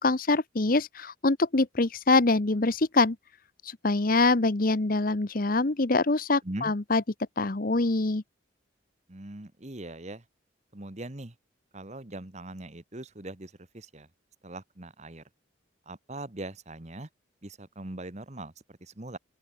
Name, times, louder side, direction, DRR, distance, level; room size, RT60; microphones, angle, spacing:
voice 1, 0.0-3.2 3.6-7.0 7.4-8.2, left 3 dB, 45° left, 1.0 m, -24 dB
voice 2, 9.1-10.2 10.7-11.3 11.7-14.1 14.4-15.2 15.9-17.1 17.4-19.2, right 2 dB, 35° right, 1.4 m, -41 dB
open air
head